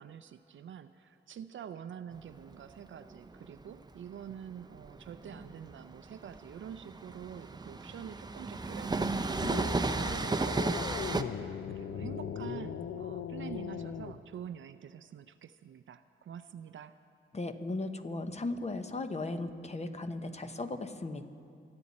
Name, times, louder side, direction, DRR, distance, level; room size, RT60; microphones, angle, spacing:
voice 1, 0.0-17.0, right 9 dB, 65° right, 11 dB, 0.5 m, -47 dB
Train, 2.1-11.2, right 3 dB, 20° right, 0.6 m, -34 dB
sound 1, 9.4-14.2, left 8 dB, 75° left, 0.6 m, -39 dB
voice 2, 17.3-21.2, left 2 dB, 30° left, 8 dB, 1.0 m, -36 dB
26.5 x 9.8 x 4.2 m, 2.4 s
cardioid pair, 75°, 21 cm